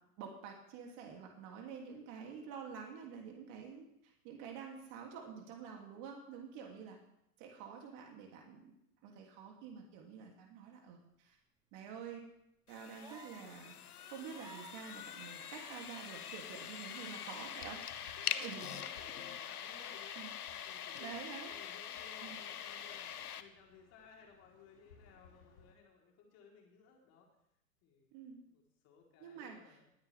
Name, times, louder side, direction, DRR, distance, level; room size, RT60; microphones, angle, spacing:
voice 1, 0.2-7.0 7.4-8.8 9.0-11.4 11.7-12.2 12.7-13.8 14.1-17.8 18.4-18.8 20.2-20.3 21.0-21.5 22.2-22.4 28.1-28.4 29.2-29.8, right 6 dB, 40° right, 1 dB, 3.0 m, -48 dB
sound 1, 12.7-23.4, left 9 dB, 85° left, 1.0 m, -44 dB
sound 2, 13.0-13.5 14.3-14.8 15.6-16.1 17.5-17.6, right 4 dB, 10° right, 1.1 m, -54 dB
sound 3, 15.4-25.7, left 5 dB, 65° left, 3.3 m, -66 dB
voice 2, 17.2-17.7 18.2-20.3 20.6-23.1 23.4-27.3 27.8-28.2 28.4-29.9, left 5 dB, 35° left, -1 dB, 4.2 m, -60 dB
20.5 x 9.5 x 3.6 m, 0.77 s
hypercardioid pair, 120°, 44 cm